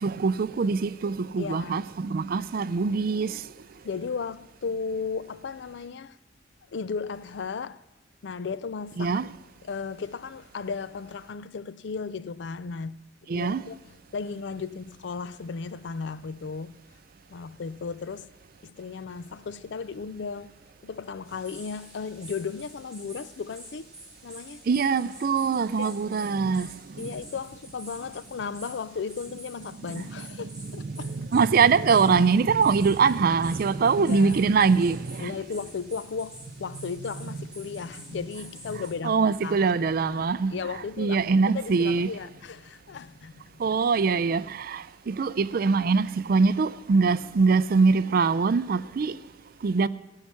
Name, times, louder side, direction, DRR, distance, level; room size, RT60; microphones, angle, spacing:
voice 1, 0.0-3.4 9.0-9.3 13.3-13.6 24.7-26.7 26.9-27.1 29.9-30.0 30.6-35.3 39.0-40.6 41.0-42.1 43.6-49.1 49.6-49.9, right 5 dB, 50° right, 0.4 m, -23 dB
voice 2, 1.4-1.8 3.8-6.2 6.7-7.8 8.2-9.3 9.6-13.0 13.3-16.7 17.3-18.3 18.6-20.5 20.8-23.9 24.2-24.6 25.8-26.0 27.0-31.2 34.0-34.4 35.2-39.7 40.0-43.8, left 5 dB, 70° left, 0.4 m, -35 dB
sound 1, 21.2-38.9, right 1 dB, 5° right, 4.8 m, -48 dB
17.0 x 5.8 x 9.6 m
head